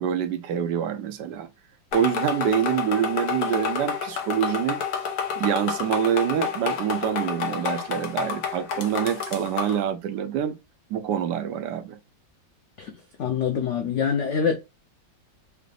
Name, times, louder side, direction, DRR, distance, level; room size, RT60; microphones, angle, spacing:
voice 1, 0.0-1.5 1.9-4.8 5.4-10.6 10.9-12.0, right 9 dB, 75° right, 1.2 m, -26 dB
sound 1, 1.9-9.8, left 6 dB, 65° left, 1.3 m, -29 dB
voice 2, 13.2-14.6, left 7 dB, 80° left, 0.6 m, -24 dB
5.0 x 2.4 x 3.2 m
omnidirectional pair, 2.0 m